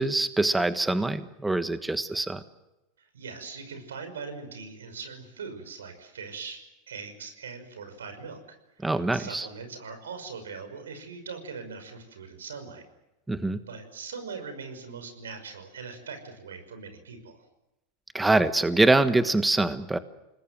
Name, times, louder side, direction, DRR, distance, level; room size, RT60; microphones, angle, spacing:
voice 1, 0.0-2.4 8.8-9.5 13.3-13.6 18.1-20.0, right 2 dB, 10° right, 11 dB, 1.3 m, -24 dB
voice 2, 3.0-12.8 13.7-17.5, right 5 dB, 90° right, 8 dB, 5.7 m, -41 dB
29.0 x 20.5 x 7.7 m, 0.95 s
hypercardioid pair, 100°, 0 cm